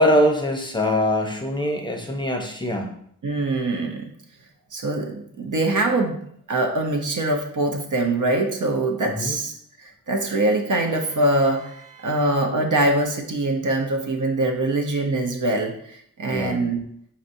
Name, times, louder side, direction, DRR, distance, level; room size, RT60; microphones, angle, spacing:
voice 1, 0.0-2.9 9.0-9.4 16.3-16.6, left 1 dB, 10° left, 2 dB, 0.8 m, -22 dB
voice 2, 3.2-4.1 4.7-6.2 6.5-16.8, right 2 dB, 55° right, 2 dB, 0.8 m, -23 dB
4.2 x 4.1 x 2.6 m, 0.66 s
cardioid pair, 60°, 38 cm